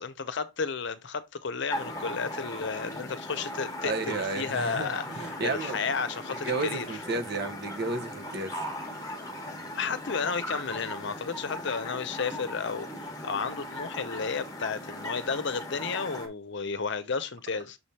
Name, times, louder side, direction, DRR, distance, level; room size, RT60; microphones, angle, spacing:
voice 1, 0.0-6.9 9.8-17.8, left 5 dB, 60° left, 0.7 m, -32 dB
sound 1, 1.7-16.3, left 1 dB, 20° left, 1.5 m, -38 dB
voice 2, 3.8-5.8 6.3-8.5, right 3 dB, 50° right, 1.1 m, -32 dB
6.8 x 3.5 x 4.2 m
head